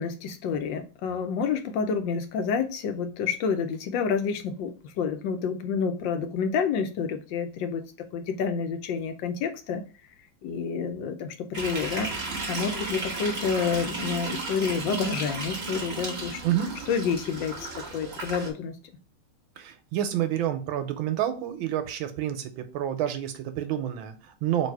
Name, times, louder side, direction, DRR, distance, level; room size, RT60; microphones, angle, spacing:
voice 1, 0.0-7.8 8.1-9.9 10.4-12.1 12.5-16.4 16.9-18.7, left 6 dB, 75° left, 8 dB, 1.3 m, -29 dB
sound 1, 11.5-18.5, right 3 dB, 40° right, 1.1 m, -34 dB
voice 2, 19.6-24.7, right 11 dB, 85° right, 8 dB, 1.5 m, -29 dB
4.0 x 2.7 x 4.5 m, 0.34 s
omnidirectional pair, 2.2 m